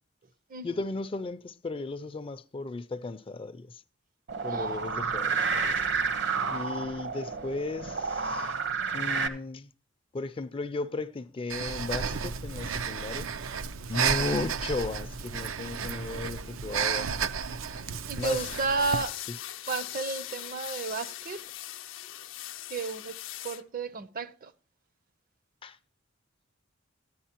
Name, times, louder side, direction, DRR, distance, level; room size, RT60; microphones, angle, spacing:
voice 1, 0.6-3.8 4.4-5.9 6.5-8.5 8.9-9.7 10.1-13.3 13.9-17.3 17.7-18.4 25.6-25.8, left 3 dB, 25° left, 0.4 m, -35 dB
sound 1, 4.3-9.3, right 5 dB, 65° right, 1.0 m, -30 dB
Breathing, 11.5-19.0, right 6 dB, 90° right, 0.6 m, -32 dB
voice 2, 18.1-19.2 19.7-21.4 22.7-23.2 23.4-24.5, right 4 dB, 45° right, 0.6 m, -32 dB
sound 2, 18.2-23.6, left 13 dB, 75° left, 0.5 m, -40 dB
14.0 x 10.0 x 2.9 m
head